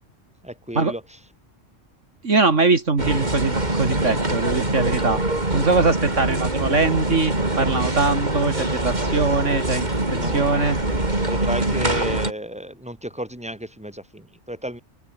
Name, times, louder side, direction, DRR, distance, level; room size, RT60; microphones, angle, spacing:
voice 1, 0.4-1.0 10.1-10.7 11.2-14.8, equal, 5° right, 6.0 m, -32 dB
voice 2, 2.2-5.2 5.5-10.8, right 3 dB, 70° right, 3.0 m, -22 dB
sound 1, 3.0-12.3, right 2 dB, 35° right, 3.9 m, -24 dB
open air
omnidirectional pair, 1.3 m